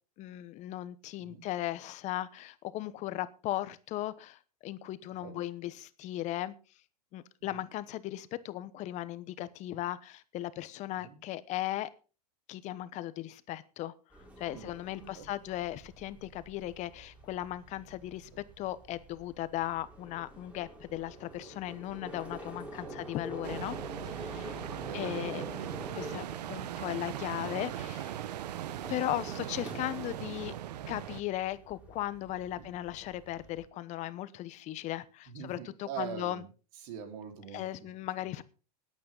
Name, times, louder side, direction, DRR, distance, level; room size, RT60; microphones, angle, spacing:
voice 1, 0.2-6.5 7.1-11.9 12.5-13.9 14.4-18.3 18.6-23.8 24.1-24.6 24.9-25.4 25.9-28.2 28.9-30.5 30.9-36.4 37.5-38.4, left 14 dB, 35° left, 15 dB, 1.0 m, -37 dB
sound 1, 14.1-33.6, equal, 5° right, 4.1 m, -48 dB
sound 2, 23.4-31.2, right 12 dB, 80° right, 1.0 m, -39 dB
voice 2, 24.8-26.3 32.6-32.7 35.3-36.5 36.8-37.6, right 7 dB, 60° right, 3 dB, 4.5 m, -43 dB
19.5 x 8.7 x 3.9 m, 0.35 s
supercardioid pair, 135°, 21 cm